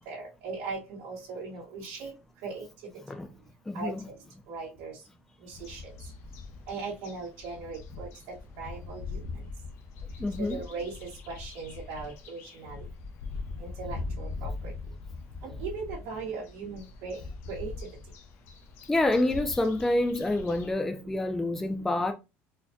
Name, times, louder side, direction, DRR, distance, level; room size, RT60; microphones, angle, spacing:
voice 1, 0.0-2.1 2.4-2.7 3.7-3.9 4.5-4.9 5.6-5.8 6.7-8.1 8.6-9.2 10.4-10.9 11.3-12.8 13.6-14.5 15.4-17.2 17.5-17.7, right 4 dB, 85° right, 1.5 m, -38 dB
voice 2, 3.7-4.0 10.2-10.6 18.9-22.1, left 2 dB, 5° left, 0.3 m, -27 dB
sound 1, 5.5-20.7, left 3 dB, 50° left, 0.7 m, -41 dB
4.2 x 2.8 x 2.2 m
cardioid pair, 165°, 5 cm